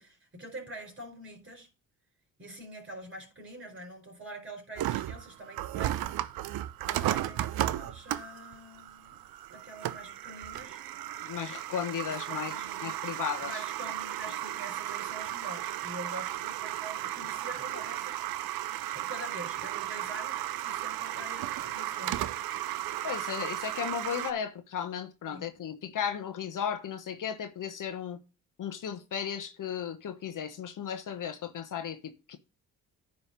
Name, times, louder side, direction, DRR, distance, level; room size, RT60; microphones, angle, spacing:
voice 1, 0.0-1.7 2.4-6.1 6.8-9.2 9.5-10.8 12.1-13.0 13.4-18.2 18.9-22.3 25.3-25.5, right 1 dB, 30° right, 4.3 m, -45 dB
sound 1, 4.8-24.3, right 13 dB, 70° right, 0.6 m, -35 dB
voice 2, 11.2-12.5 12.8-13.6 14.3-14.4 23.0-28.2 28.6-32.4, left 8 dB, 55° left, 1.1 m, -35 dB
10.0 x 3.4 x 6.5 m
supercardioid pair, 65°, 37 cm